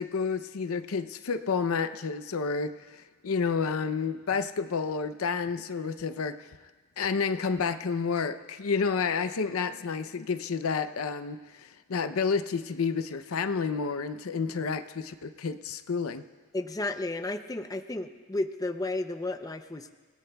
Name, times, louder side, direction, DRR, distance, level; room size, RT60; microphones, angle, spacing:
voice 1, 0.0-6.5 7.0-16.2, left 5 dB, 75° left, 10 dB, 0.6 m, -30 dB
voice 2, 16.5-19.9, left 2 dB, 15° left, 7 dB, 0.5 m, -33 dB
29.0 x 17.5 x 2.3 m, 1.4 s
head